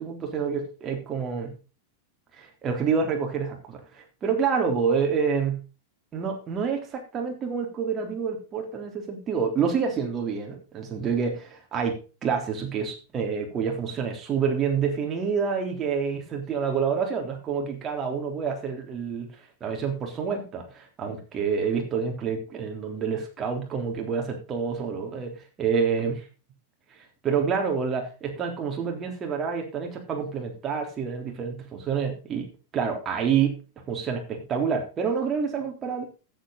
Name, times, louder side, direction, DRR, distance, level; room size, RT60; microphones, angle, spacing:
voice 1, 0.0-1.5 2.3-5.6 6.1-19.3 19.6-26.3 26.9-27.0 27.2-33.6 33.9-36.1, right 6 dB, 25° right, 2 dB, 3.6 m, -28 dB
14.0 x 8.1 x 4.1 m, 0.33 s
figure-of-eight pair, 90°, 0 cm